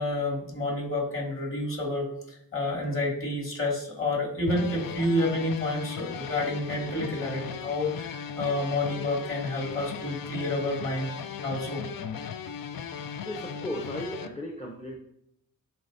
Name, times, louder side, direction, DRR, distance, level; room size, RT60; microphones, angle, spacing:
voice 1, 0.0-11.1 11.4-11.8, left 1 dB, 35° left, -2 dB, 2.3 m, -29 dB
sound 1, 4.5-14.3, left 7 dB, 70° left, 0.5 m, -37 dB
voice 2, 13.2-14.9, left 1 dB, 20° left, -2 dB, 0.7 m, -36 dB
11.0 x 4.1 x 2.7 m, 0.75 s
wide cardioid pair, 135°, 35 cm